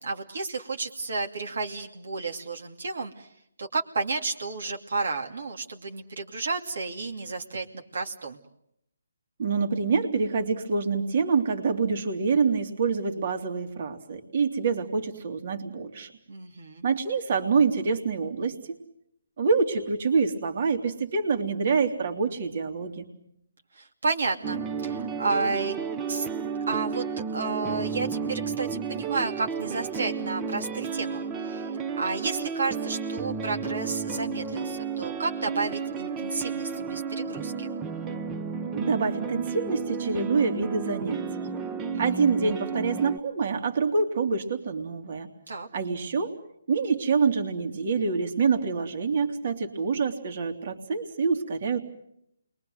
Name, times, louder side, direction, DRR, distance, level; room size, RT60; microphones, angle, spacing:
voice 1, 0.0-3.3 3.6-8.4 16.3-16.8 23.7-25.7 26.1-26.3 26.7-27.0 27.3-37.7 41.9-42.0 45.5-45.7, right 4 dB, 70° right, 2 dB, 2.6 m, -31 dB
voice 2, 9.4-16.1 16.8-18.8 19.4-23.1 38.7-41.3 42.0-45.3 45.7-46.3 46.7-51.8, right 5 dB, 45° right, 6 dB, 2.9 m, -26 dB
sound 1, 24.4-43.2, right 5 dB, 15° right, 1.0 m, -32 dB
29.0 x 22.5 x 7.9 m, 0.75 s
hypercardioid pair, 160°, 0 cm